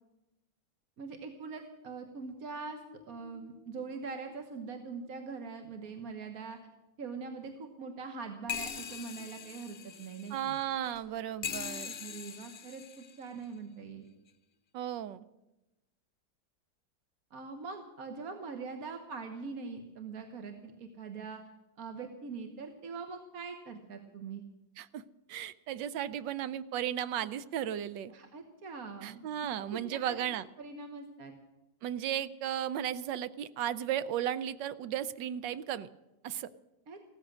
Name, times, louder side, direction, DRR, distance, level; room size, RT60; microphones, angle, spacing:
voice 1, 1.0-6.6 7.0-10.6 12.0-14.1 17.3-21.4 21.8-24.4 28.1-31.3 36.9-37.0, right 4 dB, 50° right, 5 dB, 1.6 m, -43 dB
sound 1, 2.8-3.8 4.3-4.4 4.6-4.7 8.5-11.0 11.4-13.4 14.3-14.4, left 7 dB, 50° left, 0.7 m, -42 dB
voice 2, 10.3-11.9 14.7-15.3 24.8-25.0 25.3-28.1 29.0-30.4 31.8-35.9 36.2-36.5, right 10 dB, 70° right, 15 dB, 1.3 m, -35 dB
15.5 x 13.5 x 6.2 m, 0.98 s
omnidirectional pair, 2.1 m